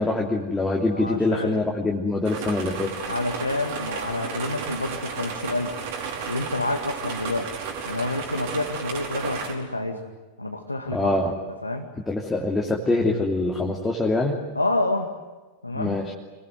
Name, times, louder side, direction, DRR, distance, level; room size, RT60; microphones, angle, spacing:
voice 1, 0.0-2.9 10.9-11.3 12.1-14.4 15.7-16.1, left 2 dB, 10° left, -2 dB, 3.0 m, -24 dB
voice 2, 0.9-1.6 3.1-5.8 6.3-7.5 7.9-10.0 10.4-11.2 11.6-11.9 14.6-15.1 15.6-16.0, left 2 dB, 85° left, 1 dB, 2.1 m, -28 dB
sound 1, 2.2-9.5, right 6 dB, 50° right, 5.1 m, -33 dB
27.5 x 22.0 x 9.4 m, 1.2 s
figure-of-eight pair, 90°, 0 cm